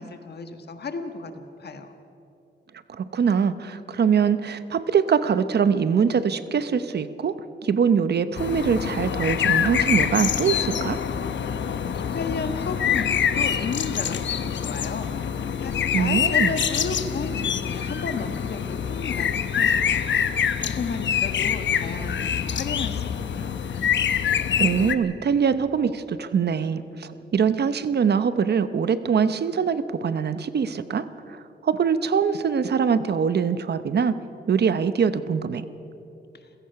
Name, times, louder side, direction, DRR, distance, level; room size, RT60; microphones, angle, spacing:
voice 1, 0.0-1.9 11.9-20.0 20.3-23.6 36.3-36.5, left 4 dB, 60° left, 7 dB, 1.5 m, -33 dB
voice 2, 2.9-7.3 7.6-11.0 15.9-16.5 24.6-34.2 34.5-35.7, right 6 dB, 65° right, 12 dB, 0.8 m, -23 dB
sound 1, 8.4-25.0, left 8 dB, 85° left, 0.9 m, -25 dB
29.0 x 16.0 x 5.8 m, 2.9 s
wide cardioid pair, 165°, 19 cm